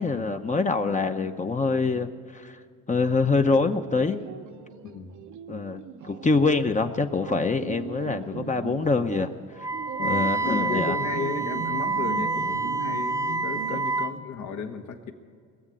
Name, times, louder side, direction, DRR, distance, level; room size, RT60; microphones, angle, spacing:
voice 1, 0.0-2.6 2.9-4.2 5.5-9.3 10.0-11.0, left 3 dB, 25° left, 6 dB, 0.8 m, -25 dB
sound 1, 3.4-13.8, right 8 dB, 75° right, 0.9 m, -39 dB
Wind instrument woodwind instrument, 9.6-14.2, right 3 dB, 10° right, 0.6 m, -28 dB
voice 2, 10.0-15.1, left 5 dB, 75° left, 4 dB, 1.7 m, -34 dB
21.5 x 7.3 x 9.1 m, 2.2 s
cardioid pair, 90°, 30 cm